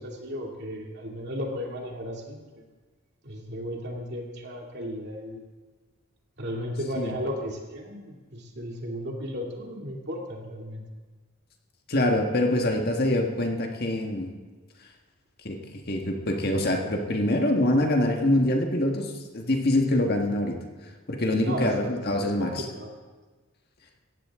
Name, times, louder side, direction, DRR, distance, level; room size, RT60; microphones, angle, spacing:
voice 1, 0.0-2.4 3.2-5.4 6.4-10.8 21.4-22.0 22.4-22.9, equal, 50° right, 0 dB, 2.6 m, -35 dB
voice 2, 11.9-14.3 15.4-15.6 15.9-20.6 21.1-22.7, left 1 dB, 45° left, 2 dB, 1.6 m, -25 dB
18.0 x 15.0 x 3.7 m, 1.3 s
head